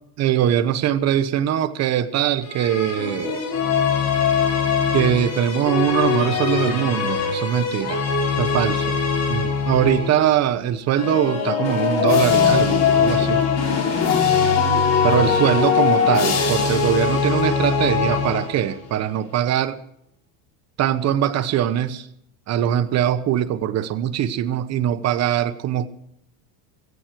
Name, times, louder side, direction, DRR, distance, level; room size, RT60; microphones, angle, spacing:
voice 1, 0.2-3.4 4.9-8.0 8.4-9.0 9.3-13.4 15.0-19.8 20.8-22.1 22.5-25.9, right 10 dB, 40° right, 1.0 m, -22 dB
sound 1, 2.4-10.3 10.9-18.8, left 6 dB, 40° left, 6.4 m, -21 dB
17.5 x 16.0 x 4.5 m
cardioid pair, 150°, 41 cm